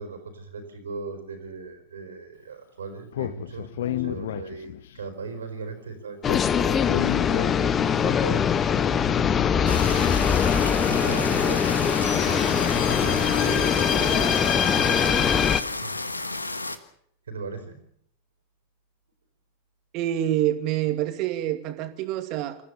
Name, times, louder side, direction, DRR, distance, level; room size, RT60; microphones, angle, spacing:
voice 1, 0.0-9.9 10.8-16.0 17.3-17.8, right 4 dB, 70° right, 8 dB, 4.6 m, -38 dB
Speech, 3.1-5.0 6.2-8.0, left 12 dB, 60° left, 0.9 m, -31 dB
sound 1, 6.2-15.6, left 7 dB, 25° left, 1.0 m, -22 dB
sound 2, 9.7-16.8, left 2 dB, 80° left, 1.4 m, -32 dB
voice 2, 19.9-22.6, right 12 dB, 40° right, 8 dB, 2.5 m, -26 dB
27.0 x 15.0 x 6.9 m, 0.67 s
figure-of-eight pair, 90°, 0 cm